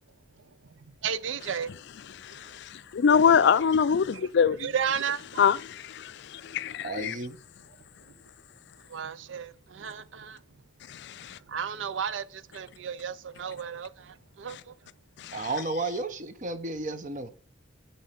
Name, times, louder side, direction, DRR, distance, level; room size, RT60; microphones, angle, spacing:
voice 1, 1.0-1.7 2.3-2.6 4.1-4.3 4.6-5.4 8.9-10.4 11.3-14.7, right 7 dB, 70° right, 0.5 m, -34 dB
voice 2, 2.2-4.6 5.4-7.1 10.9-11.4 15.2-15.4, left 7 dB, 60° left, 0.4 m, -24 dB
voice 3, 6.8-7.4 15.3-17.3, right 2 dB, 40° right, 1.0 m, -33 dB
9.2 x 4.5 x 6.8 m
head